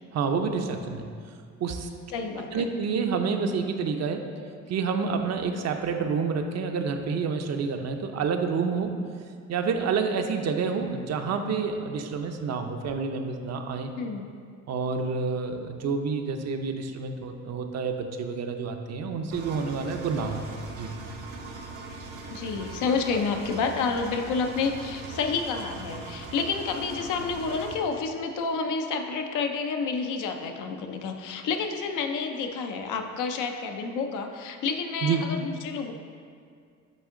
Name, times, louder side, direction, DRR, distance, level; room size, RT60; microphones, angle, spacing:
voice 1, 0.1-1.1 1.6-1.9 2.5-4.2 4.7-9.0 9.5-13.9 14.7-20.4 20.7-20.9 35.0-35.3, right 5 dB, 60° right, 5 dB, 0.6 m, -28 dB
voice 2, 2.1-2.7 14.0-14.3 22.3-35.9, left 5 dB, 85° left, 5 dB, 0.6 m, -29 dB
Engine, 19.3-27.7, right 3 dB, 85° right, 0.9 m, -40 dB
8.2 x 3.6 x 3.7 m, 2.2 s
cardioid pair, 90°, 30 cm